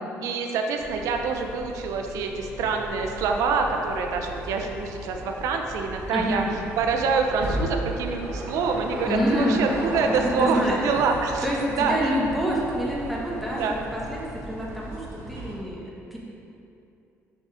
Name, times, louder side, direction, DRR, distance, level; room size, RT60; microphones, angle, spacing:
voice 1, 0.2-11.5 11.8-12.2 13.5-13.7, right 4 dB, 80° right, 3 dB, 0.7 m, -26 dB
sound 1, 0.8-15.6, right 1 dB, 60° right, 1.6 m, -36 dB
voice 2, 6.1-6.4 9.1-9.6 10.4-10.8 11.4-16.2, equal, ahead, -5 dB, 1.5 m, -27 dB
6.7 x 5.5 x 4.9 m, 2.7 s
cardioid pair, 95°, 6 cm